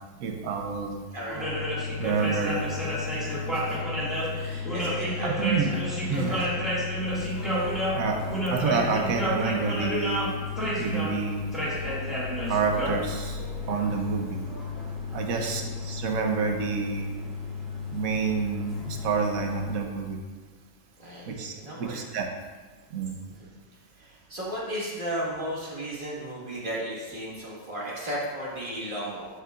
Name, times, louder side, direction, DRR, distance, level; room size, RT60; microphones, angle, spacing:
voice 1, 0.2-1.0 2.0-2.6 5.2-5.7 6.1-6.3 7.9-8.2 8.5-10.3 10.8-11.5 12.4-13.4 13.7-14.4 15.1-17.1 17.9-20.2 21.3-21.5 21.8-22.3 22.9-23.1, right 5 dB, 70° right, 3 dB, 1.3 m, -28 dB
voice 2, 1.1-1.7 3.5-3.8 4.3-5.8 6.1-6.7 15.3-15.7 21.0-22.0 23.4-23.5 23.9-29.3, right 1 dB, 35° right, -6 dB, 1.9 m, -35 dB
sound 1, 1.3-19.8, left 1 dB, ahead, 1.9 m, -31 dB
11.5 x 5.5 x 2.5 m, 1.4 s
omnidirectional pair, 1.6 m